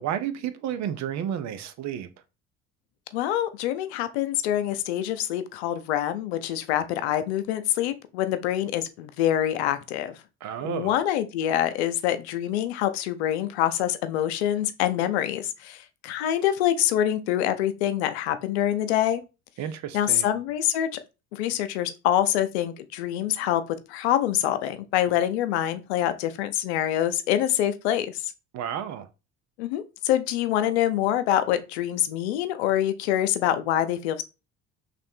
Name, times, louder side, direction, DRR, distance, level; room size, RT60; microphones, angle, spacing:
voice 1, 0.0-2.1 10.4-10.9 19.6-20.3 28.5-29.1, right 9 dB, 60° right, 0.6 m, -31 dB
voice 2, 3.1-10.2 10.6-19.2 19.9-21.0 21.3-23.6 23.9-28.3 29.6-34.2, left 11 dB, 90° left, 0.5 m, -25 dB
3.3 x 2.5 x 4.3 m
supercardioid pair, 70°, 32 cm